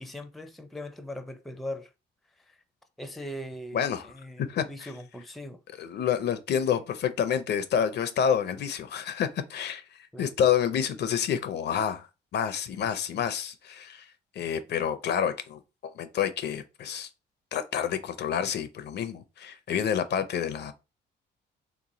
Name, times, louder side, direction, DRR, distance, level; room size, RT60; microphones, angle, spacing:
voice 1, 0.0-1.9 3.0-3.9 4.1-4.4 4.7-5.6 10.1-10.3, left 1 dB, ahead, 0.4 m, -39 dB
voice 2, 3.7-4.9 5.8-17.1 17.5-20.7, left 8 dB, 60° left, 0.5 m, -29 dB
3.5 x 3.0 x 2.6 m
cardioid pair, 90°, 20 cm